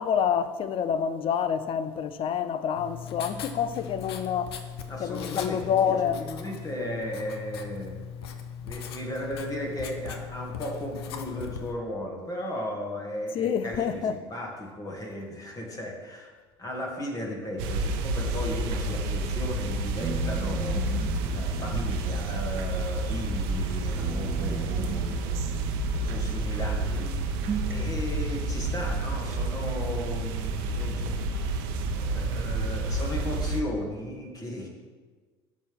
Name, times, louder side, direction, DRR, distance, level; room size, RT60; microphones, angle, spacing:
voice 1, 0.0-4.5 5.0-6.2 13.3-14.1, left 8 dB, 45° left, 0.6 m, -27 dB
Writing, 2.8-11.7, left 7 dB, 80° left, 0.8 m, -39 dB
voice 2, 4.9-8.0 8.6-16.3 16.6-21.0 21.3-25.4 25.9-27.1 27.6-31.6 31.9-34.7, left 1 dB, 25° left, 2.2 m, -36 dB
sound 1, 17.6-33.6, right 2 dB, 70° right, 0.9 m, -29 dB
sound 2, 20.0-23.7 24.0-26.7 27.0-28.0, right 4 dB, 15° right, 1.2 m, -39 dB
11.5 x 6.3 x 3.6 m
hypercardioid pair, 70°, 13 cm